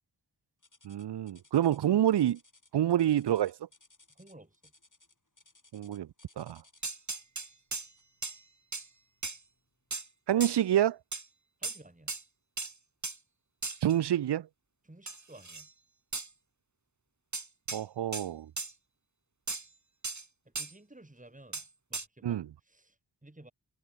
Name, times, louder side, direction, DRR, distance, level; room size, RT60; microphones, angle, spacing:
sound 1, 0.6-7.0 8.0-8.2 8.8-8.9 9.6-9.7, left 3 dB, 50° left, 7.3 m, -62 dB
voice 1, 0.8-2.4 2.7-3.5 5.7-6.1 6.4-6.6 10.3-11.0 13.8-14.5 17.7-18.5 22.2-22.5, right 11 dB, 80° right, 0.5 m, -27 dB
voice 2, 4.1-4.7 11.6-12.1 14.8-15.7 20.6-21.6 21.9-22.4 22.6-23.5, right 1 dB, 20° right, 3.4 m, -54 dB
sound 2, 6.8-7.9 8.2-8.4 8.7-8.9 9.2-9.4 9.9-10.1 10.4-10.6 11.1-11.2 11.6-11.8 12.1-12.2 12.6-12.7 13.0-13.2 13.6-13.9 15.1-15.7 16.1-16.3 17.3-17.8 18.1-18.3 18.6-18.7 19.5-19.7 20.0-20.2 20.6-20.7 21.5-21.7 21.9-22.1, right 3 dB, 45° right, 2.5 m, -37 dB
wide cardioid pair, 60°, 40 cm